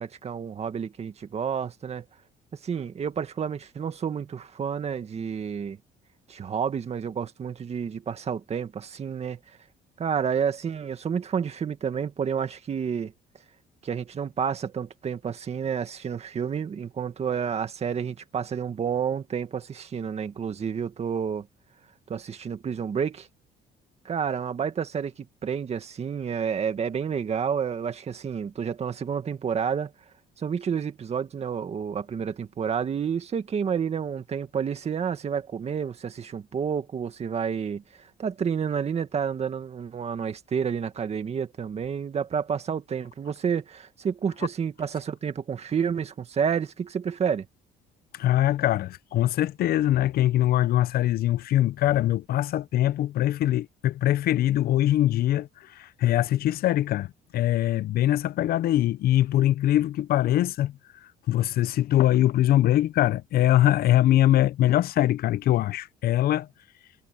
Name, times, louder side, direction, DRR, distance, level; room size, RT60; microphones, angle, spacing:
voice 1, 0.0-2.1 2.6-5.8 6.3-9.4 10.0-13.1 13.8-21.5 22.1-23.3 24.1-25.1 25.4-29.9 30.4-37.8 38.2-47.5, right 7 dB, 40° right, 2.1 m, -30 dB
voice 2, 48.1-60.7 61.3-66.5, left 13 dB, 65° left, 0.7 m, -22 dB
cardioid pair, 110°, 17 cm